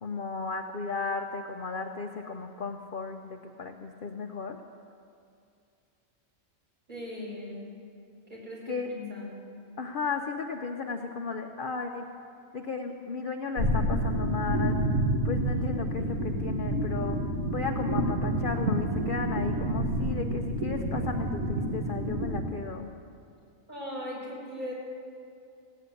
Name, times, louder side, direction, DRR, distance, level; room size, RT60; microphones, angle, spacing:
voice 1, 0.0-4.6 8.7-8.9 9.8-12.1 12.5-14.8 15.2-17.2 17.5-22.9, left 4 dB, 50° left, 3 dB, 0.7 m, -34 dB
voice 2, 6.9-7.6 8.3-9.4 23.7-24.7, left 1 dB, 35° right, -6 dB, 5.4 m, -38 dB
sound 1, 13.6-22.4, right 1 dB, 85° right, 1.9 m, -29 dB
16.0 x 9.5 x 8.4 m, 2.5 s
omnidirectional pair, 1.4 m